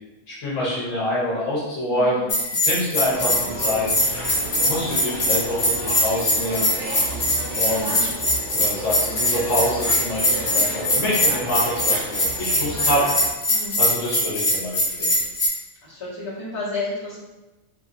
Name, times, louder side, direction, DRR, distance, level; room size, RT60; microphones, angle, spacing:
voice 1, 0.3-2.2 2.6-4.3 4.6-7.0 7.6-8.1 8.5-13.1 13.8-15.2, left 1 dB, 75° left, -7 dB, 1.2 m, -26 dB
voice 2, 1.9-2.3 13.5-13.8 15.8-17.2, left 2 dB, 20° left, -13 dB, 1.4 m, -31 dB
Bell, 2.3-15.5, left 1 dB, 50° left, 1.0 m, -22 dB
sound 1, 3.1-13.3, right 1 dB, 70° right, 1.2 m, -33 dB
3.0 x 2.7 x 2.4 m, 1.1 s
omnidirectional pair, 1.3 m